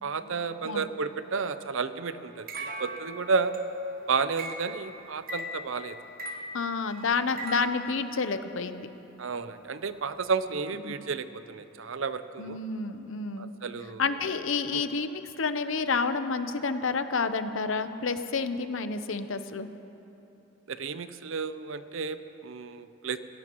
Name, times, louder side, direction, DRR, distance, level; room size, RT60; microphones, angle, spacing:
voice 1, 0.0-3.5 4.1-5.9 9.2-12.6 13.4-14.0 14.7-14.9 20.7-23.2, right 5 dB, 70° right, 11 dB, 0.6 m, -32 dB
sound 1, 2.5-8.0, right 1 dB, 45° right, 1.1 m, -39 dB
voice 2, 6.5-8.9 10.9-11.0 12.4-13.5 14.0-19.7, left 4 dB, 65° left, 10 dB, 0.7 m, -29 dB
27.0 x 16.5 x 3.1 m, 2.9 s
head